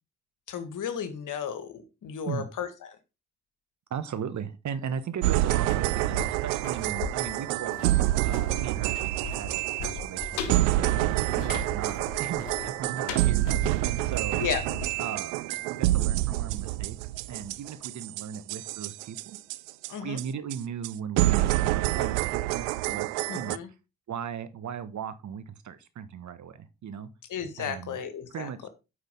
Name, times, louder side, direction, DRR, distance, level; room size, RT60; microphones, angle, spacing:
voice 1, 0.5-3.0 11.3-11.6 14.4-14.6 19.9-20.2 23.3-23.7 27.3-28.7, left 8 dB, 55° left, 10 dB, 1.8 m, -34 dB
voice 2, 3.9-11.0 11.3-14.4 15.0-19.4 20.0-23.6 24.1-27.1 27.6-28.0 28.3-28.7, right 7 dB, 50° right, 13 dB, 1.3 m, -37 dB
sound 1, 5.2-19.9 20.2-20.3 20.5-20.6 20.8-20.9 21.2-23.6, right 17 dB, 75° right, 0.5 m, -27 dB
sound 2, 5.5-16.3 16.6-16.7, left 5 dB, 80° left, 1.1 m, -40 dB
9.2 x 6.4 x 3.7 m, 0.27 s
hypercardioid pair, 45°, 37 cm